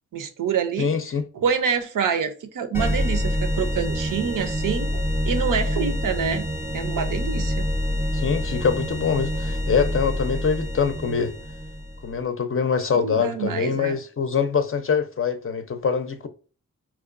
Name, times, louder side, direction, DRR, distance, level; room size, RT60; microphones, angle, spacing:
voice 1, 0.1-1.0 1.3-6.5 6.7-7.7 13.0-14.0, right 7 dB, 65° right, 0.6 m, -26 dB
voice 2, 0.8-1.2 8.1-11.3 12.0-16.3, left 6 dB, 40° left, 0.5 m, -24 dB
sound 1, 2.7-12.2, equal, 5° right, 0.6 m, -26 dB
4.7 x 2.2 x 2.4 m
cardioid pair, 45°, 34 cm